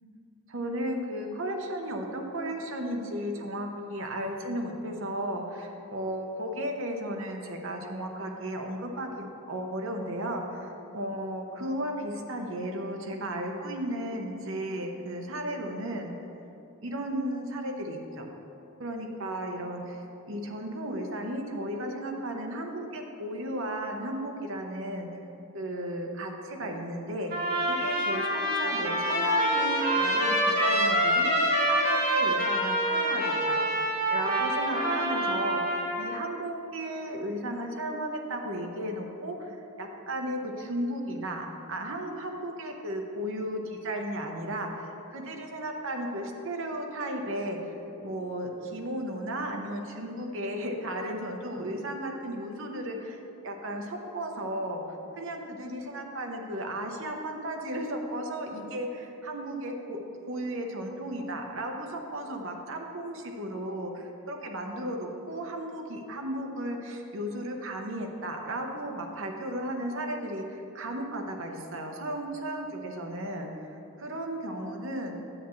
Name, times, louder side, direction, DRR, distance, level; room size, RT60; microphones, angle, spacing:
voice 1, 0.5-16.1 16.8-18.3 18.8-25.1 25.5-33.6 34.1-47.7 48.0-60.0 60.2-75.2, right 1 dB, 65° right, 2 dB, 0.9 m, -34 dB
Trumpet, 27.3-36.1, equal, 50° right, 2.1 m, -26 dB
9.9 x 8.3 x 3.1 m, 3.0 s
head